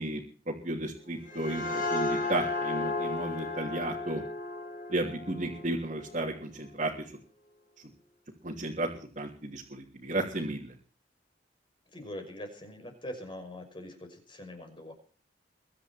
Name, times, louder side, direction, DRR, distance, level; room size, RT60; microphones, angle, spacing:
voice 1, 0.0-4.2 4.9-7.1 8.4-10.7, right 1 dB, 40° right, -4 dB, 3.2 m, -34 dB
sound 1, 1.0-6.5, left 2 dB, 50° left, 5.0 m, -34 dB
voice 2, 11.9-14.9, left 1 dB, 30° left, 4 dB, 6.0 m, -43 dB
23.0 x 11.0 x 4.5 m, 0.43 s
head